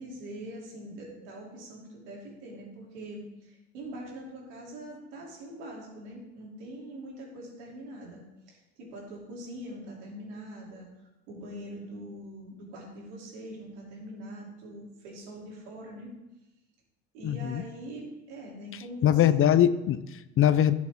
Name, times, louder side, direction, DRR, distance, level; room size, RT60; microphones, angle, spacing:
voice 1, 0.0-16.1 17.1-19.2, right 1 dB, 80° right, -2 dB, 3.1 m, -43 dB
voice 2, 17.2-17.6 18.7-20.7, left 10 dB, 40° left, 14 dB, 0.5 m, -23 dB
11.5 x 6.2 x 3.6 m, 0.99 s
hypercardioid pair, 80°, 34 cm